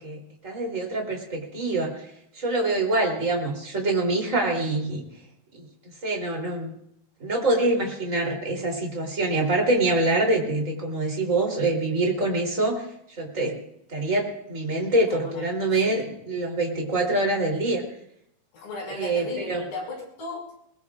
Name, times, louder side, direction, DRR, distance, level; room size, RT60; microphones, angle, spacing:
voice 1, 0.0-2.1 2.4-5.0 5.5-5.6 6.0-6.7 7.2-12.8 13.2-13.6 13.9-17.8 18.9-19.6, right 2 dB, 20° right, 0 dB, 3.4 m, -25 dB
voice 2, 15.1-15.5 15.8-16.0 18.5-20.6, left 3 dB, 70° left, -1 dB, 7.5 m, -36 dB
22.5 x 21.0 x 2.5 m, 0.73 s
omnidirectional pair, 4.2 m